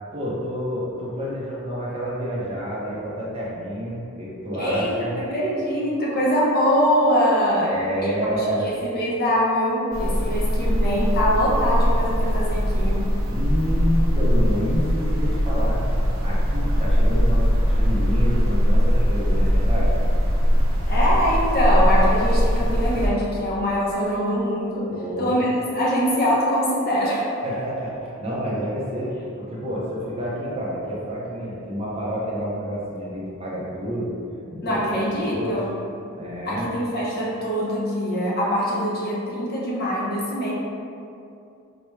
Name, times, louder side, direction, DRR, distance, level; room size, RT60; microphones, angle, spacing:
voice 1, 0.1-5.2 7.6-8.7 13.2-15.8 16.2-19.9 24.9-25.4 27.4-34.2 34.5-35.6 36.1-36.7, equal, 30° right, -6 dB, 0.6 m, -29 dB
voice 2, 4.6-7.7 8.0-13.0 20.9-24.9 25.2-27.3 34.6-35.7 36.5-40.5, equal, 45° left, -6 dB, 0.7 m, -23 dB
sound 1, 9.9-23.1, equal, 70° right, 0.6 m, -20 dB
4.3 x 2.2 x 3.1 m, 2.6 s
head